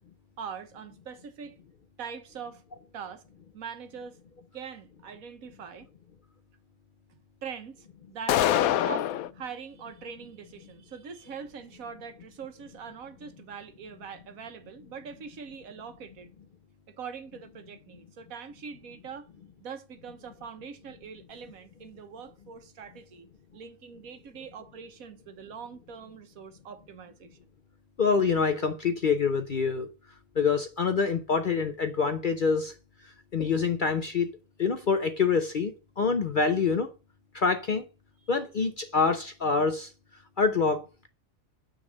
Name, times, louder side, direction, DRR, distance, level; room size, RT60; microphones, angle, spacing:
voice 1, 0.4-1.6 2.0-2.6 2.9-3.2 3.5-4.2 4.5-5.9 7.1-16.3 16.9-19.3 19.6-23.3 23.5-27.4, right 6 dB, 75° right, 1.5 m, -43 dB
sound 1, 8.3-9.3, left 12 dB, 85° left, 1.0 m, -24 dB
voice 2, 28.0-29.9 30.4-32.7 33.3-34.3 34.6-36.9 37.3-37.8 38.3-39.9 40.4-41.1, left 5 dB, 50° left, 0.6 m, -26 dB
9.0 x 4.0 x 6.2 m
omnidirectional pair, 1.5 m